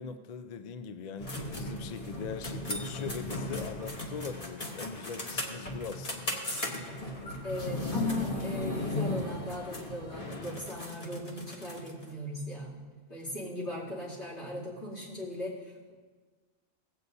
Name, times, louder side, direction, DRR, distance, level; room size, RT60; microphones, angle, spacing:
voice 1, 0.0-6.4, left 6 dB, 50° left, 8 dB, 0.5 m, -41 dB
sound 1, 1.2-12.0, left 1 dB, 35° left, 1.2 m, -36 dB
voice 2, 7.4-12.8 13.1-15.9, left 1 dB, 80° left, -8 dB, 3.1 m, -38 dB
17.5 x 8.2 x 2.7 m, 1.5 s
omnidirectional pair, 1.2 m